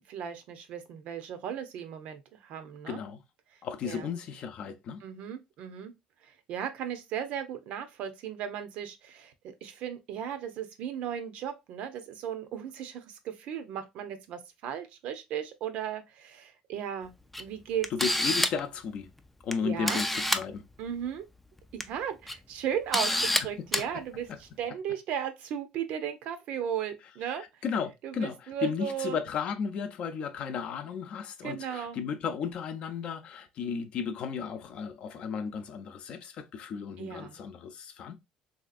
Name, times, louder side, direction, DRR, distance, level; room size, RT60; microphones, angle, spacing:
voice 1, 0.1-3.0 3.8-4.1 5.0-5.9 6.2-17.9 19.6-20.0 20.8-21.2 21.7-27.4 28.0-29.2 31.4-32.0 37.0-37.4, right 9 dB, 70° right, 0.6 m, -36 dB
voice 2, 2.9-3.2 3.6-5.0 17.9-19.1 19.4-20.6 23.1-23.5 24.3-24.4 27.3-38.2, left 6 dB, 55° left, 0.6 m, -34 dB
Camera, 17.3-17.4 17.8-18.7 19.5-19.6 19.9-20.4 21.6-21.8 22.3-22.4 22.9-23.4 23.7-23.8, left 1 dB, 5° left, 0.3 m, -27 dB
3.2 x 2.8 x 2.4 m
cardioid pair, 130°, 2 cm